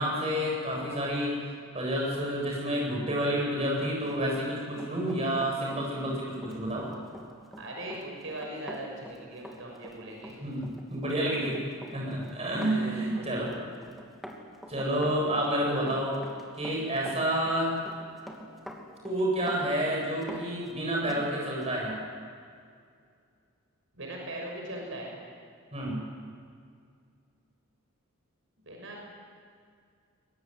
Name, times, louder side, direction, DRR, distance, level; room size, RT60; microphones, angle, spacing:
voice 1, 0.0-1.4 1.7-6.9 10.4-11.6 11.9-13.6 14.7-16.2 16.5-17.7 19.0-22.0 25.7-26.0, right 1 dB, 30° right, -2 dB, 8.0 m, -29 dB
Run, 4.2-21.3 21.6-21.8, equal, ahead, 2.9 m, -46 dB
voice 2, 7.6-10.4 12.7-13.3 23.9-25.1 28.6-29.1, right 1 dB, 65° right, 0 dB, 6.2 m, -39 dB
23.5 x 21.5 x 9.7 m, 2.2 s
head